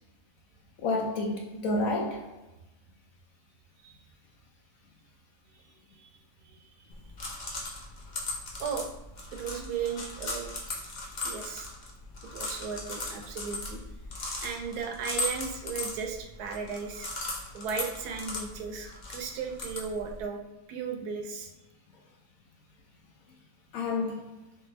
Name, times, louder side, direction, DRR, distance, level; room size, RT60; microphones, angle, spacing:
voice 1, 0.8-2.4 23.7-24.3, left 2 dB, 65° left, 0.9 m, -30 dB
voice 2, 5.5-6.1 6.4-6.9 8.6-8.9 9.3-10.6 11.2-11.7 12.3-13.8 14.4-17.1 17.5-20.4 20.7-21.5, right 6 dB, 75° right, 1.1 m, -36 dB
sound 1, 6.9-20.2, left 2 dB, 85° left, 0.4 m, -38 dB
3.3 x 3.3 x 3.1 m
omnidirectional pair, 1.8 m